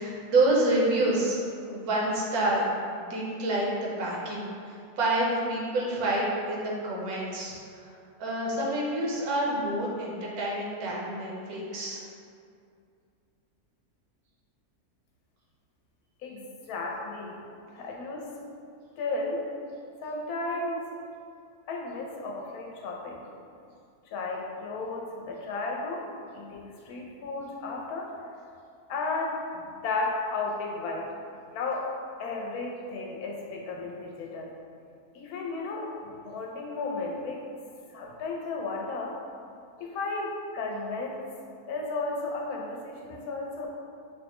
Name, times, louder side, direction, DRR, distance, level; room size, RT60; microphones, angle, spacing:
voice 1, 0.0-7.5 8.2-12.0, right 1 dB, 75° right, -4 dB, 1.2 m, -28 dB
voice 2, 16.2-17.4 17.7-18.3 19.0-19.5 20.0-21.0 21.7-23.2 24.1-28.1 28.9-31.1 31.5-31.9 32.2-34.5 35.1-37.5 37.9-39.2 39.8-41.2 41.6-43.7, left 3 dB, 75° left, -1 dB, 1.0 m, -34 dB
4.8 x 2.1 x 2.9 m, 2.4 s
omnidirectional pair, 1.6 m